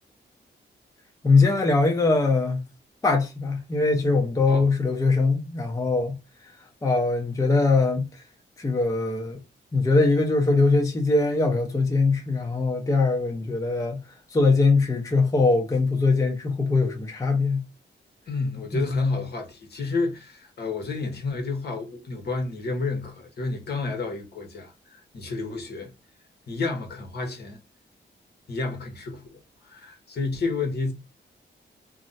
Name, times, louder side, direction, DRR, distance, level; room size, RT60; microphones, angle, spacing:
voice 1, 1.2-2.6 3.0-6.2 6.8-8.1 8.6-9.4 9.7-14.0 14.3-17.6 18.7-19.0, left 3 dB, 15° left, 0.5 m, -22 dB
voice 2, 18.3-25.9 26.5-27.6 28.5-30.9, left 3 dB, 55° left, 0.9 m, -30 dB
2.4 x 2.1 x 3.9 m
wide cardioid pair, 150°, 20 cm